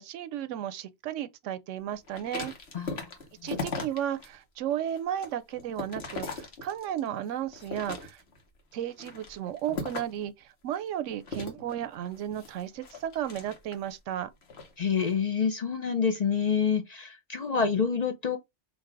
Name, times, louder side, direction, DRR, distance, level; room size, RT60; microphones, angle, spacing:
voice 1, 0.0-2.5 3.4-8.2 8.7-14.3, right 10 dB, 85° right, 0.9 m, -34 dB
sound 1, 2.1-4.3 4.7-7.1 7.5-8.4 8.9-10.3 11.2-13.9 14.4-14.7, left 3 dB, 60° left, 1.3 m, -38 dB
voice 2, 2.7-3.1 14.8-18.4, left 6 dB, 45° left, 0.6 m, -27 dB
3.9 x 2.6 x 4.6 m
omnidirectional pair, 1.2 m